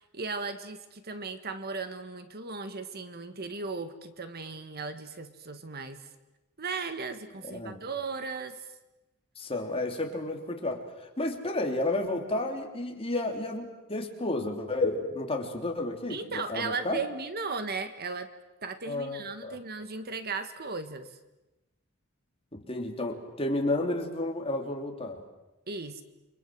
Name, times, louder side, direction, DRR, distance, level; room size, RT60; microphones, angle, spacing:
voice 1, 0.0-6.1 6.6-8.7 16.1-18.3 18.6-21.1 25.7-26.0, right 4 dB, 50° right, 9 dB, 1.7 m, -36 dB
voice 2, 7.4-7.8 9.3-17.0 18.9-19.6 22.5-25.2, left 2 dB, 25° left, 3 dB, 3.4 m, -32 dB
29.5 x 24.5 x 7.8 m, 1.0 s
head